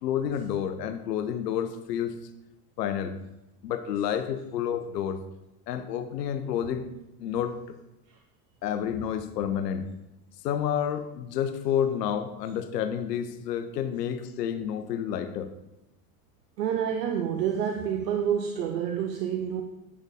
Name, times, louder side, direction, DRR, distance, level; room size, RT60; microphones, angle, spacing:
voice 1, 0.0-2.1 2.8-3.1 3.6-5.2 5.7-6.9 7.2-7.6 8.6-9.9 10.4-15.5, left 9 dB, 85° left, 10 dB, 0.8 m, -29 dB
voice 2, 16.6-19.6, right 8 dB, 85° right, 4 dB, 0.8 m, -28 dB
9.7 x 6.4 x 3.6 m, 0.93 s
hypercardioid pair, 80°, 47 cm